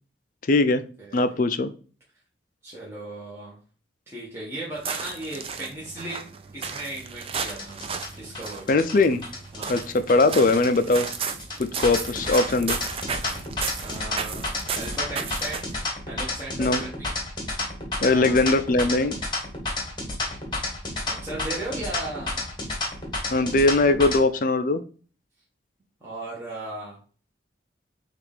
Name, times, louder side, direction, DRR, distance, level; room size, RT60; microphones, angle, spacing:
voice 1, 0.5-0.8 1.1-1.7 8.7-9.2 9.7-11.1 11.6-12.8 16.6-16.8 18.0-19.1 23.3-24.8, left 2 dB, 45° left, 11 dB, 0.4 m, -20 dB
voice 2, 2.6-3.6 4.1-7.8 8.1-8.7 9.5-9.8 13.8-15.7 16.1-17.2 17.9-18.4 21.1-22.4 26.0-27.0, right 1 dB, 15° right, -6 dB, 1.0 m, -36 dB
sound 1, 4.7-15.9, right 6 dB, 30° right, 0.3 m, -34 dB
sound 2, 7.5-24.2, left 2 dB, 25° left, 1.1 m, -31 dB
6.1 x 2.5 x 3.4 m, 0.39 s
head